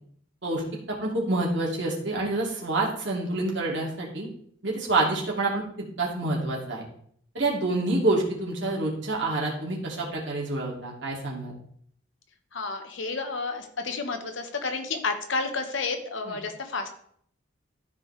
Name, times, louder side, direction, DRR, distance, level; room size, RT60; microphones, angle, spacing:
voice 1, 0.4-4.3 4.6-5.6 6.0-6.8 7.3-11.5 16.2-16.4, right 2 dB, 60° right, -3 dB, 2.4 m, -27 dB
voice 2, 12.5-16.9, left 4 dB, 65° left, 6 dB, 1.1 m, -31 dB
13.5 x 4.8 x 3.3 m, 0.63 s
head